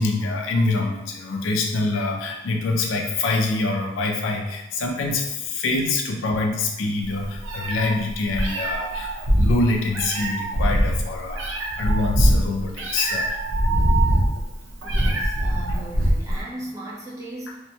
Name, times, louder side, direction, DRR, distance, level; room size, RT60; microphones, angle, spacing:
voice 1, 0.0-13.4 15.7-15.8, left 3 dB, 80° left, 1 dB, 0.4 m, -25 dB
Meow, 7.0-16.4, right 1 dB, 85° right, 0.5 m, -22 dB
voice 2, 14.8-17.6, right 2 dB, 15° right, -6 dB, 0.6 m, -37 dB
2.6 x 2.1 x 2.8 m, 0.94 s
head